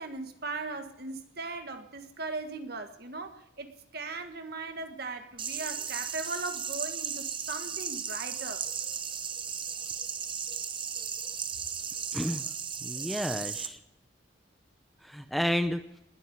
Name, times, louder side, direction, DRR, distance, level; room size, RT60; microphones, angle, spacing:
voice 1, 0.0-8.6, right 3 dB, 50° right, 1.6 m, -38 dB
sound 1, 5.4-13.7, right 7 dB, 25° right, 0.9 m, -35 dB
voice 2, 12.1-12.4 12.8-13.8 15.0-15.9, equal, ahead, 0.6 m, -31 dB
19.5 x 7.7 x 9.3 m
head